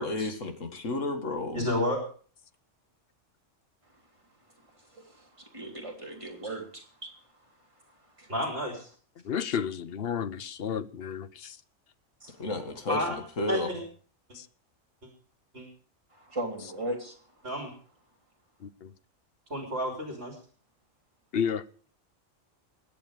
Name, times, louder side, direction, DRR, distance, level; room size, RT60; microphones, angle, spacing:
voice 1, 0.0-1.7 12.4-13.7, left 2 dB, 75° left, 2.2 m, -32 dB
voice 2, 1.5-2.0 8.3-8.9 12.5-12.6 12.9-13.2 13.5-13.8 15.5-15.7 17.4-17.7 19.5-20.4, left 1 dB, 55° right, 3.5 m, -30 dB
voice 3, 4.9-7.1 8.2-8.3 12.2-12.3 16.1-17.1, right 1 dB, 25° right, 3.5 m, -38 dB
voice 4, 9.2-11.6 14.3-14.5 18.6-18.9 21.3-21.6, left 7 dB, 55° left, 0.9 m, -32 dB
21.0 x 8.5 x 5.1 m
omnidirectional pair, 1.3 m